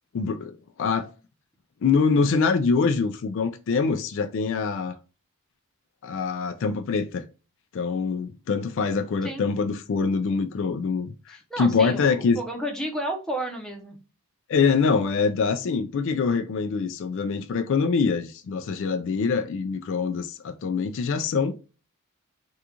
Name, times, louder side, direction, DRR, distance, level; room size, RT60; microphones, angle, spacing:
voice 1, 0.1-1.1 1.8-5.0 6.0-7.2 7.7-12.4 14.5-21.6, left 5 dB, 60° left, 0.3 m, -24 dB
voice 2, 11.3-14.0, right 1 dB, 5° left, 0.7 m, -32 dB
3.6 x 2.4 x 2.8 m
head